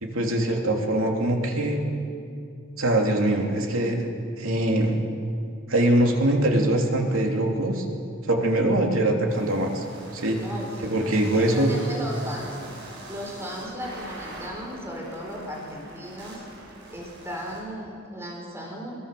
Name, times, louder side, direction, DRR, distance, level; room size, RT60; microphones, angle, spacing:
voice 1, 0.0-1.8 2.8-5.0 5.7-7.8 8.3-9.8 10.1-10.4 10.8-11.7, right 1 dB, 90° right, 1 dB, 3.0 m, -23 dB
sound 1, 9.3-17.6, right 2 dB, 55° right, 7.4 m, -44 dB
voice 2, 10.4-12.6 13.1-16.4 16.9-18.9, equal, 15° right, -2 dB, 4.3 m, -36 dB
22.0 x 20.5 x 6.9 m, 2.4 s
head